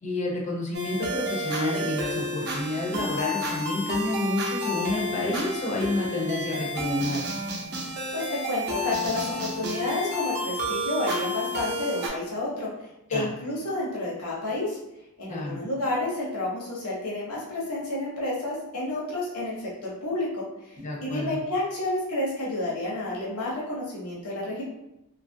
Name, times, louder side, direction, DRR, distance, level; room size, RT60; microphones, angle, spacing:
voice 1, 0.0-7.2 13.1-13.3 15.3-15.6 20.8-21.4, left 2 dB, 30° left, -2 dB, 0.6 m, -29 dB
sound 1, 0.7-12.1, equal, 50° right, 0.6 m, -31 dB
voice 2, 8.1-12.7 13.1-14.8 15.2-19.5 19.8-20.7 21.0-24.6, left 2 dB, 75° left, -6 dB, 0.8 m, -30 dB
2.7 x 2.4 x 2.7 m, 0.88 s
head